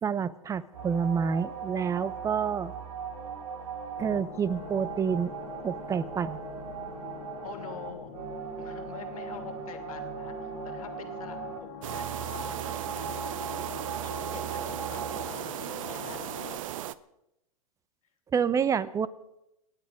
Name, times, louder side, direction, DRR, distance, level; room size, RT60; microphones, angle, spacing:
voice 1, 0.0-2.7 4.0-5.3 5.6-6.4 18.3-19.1, right 6 dB, 15° right, 17 dB, 0.8 m, -28 dB
sound 1, 0.7-15.3, right 6 dB, 85° right, 4.0 m, -39 dB
sound 2, 4.0-16.6, left 9 dB, 55° left, 1.8 m, -45 dB
voice 2, 7.4-8.1 8.6-13.6 14.0-16.3, left 8 dB, 80° left, 6 dB, 2.9 m, -46 dB
sound 3, 11.8-16.9, right 12 dB, 65° right, 0.9 m, -37 dB
27.0 x 9.5 x 5.2 m, 0.86 s
hypercardioid pair, 125°, 18 cm